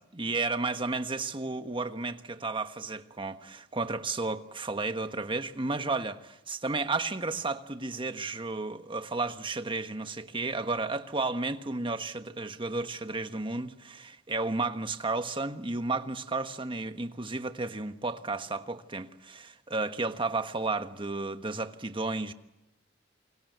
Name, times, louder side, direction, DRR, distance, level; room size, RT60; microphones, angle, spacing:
voice 1, 0.1-22.3, right 3 dB, 25° right, 1.3 m, -33 dB
28.5 x 24.0 x 8.1 m
head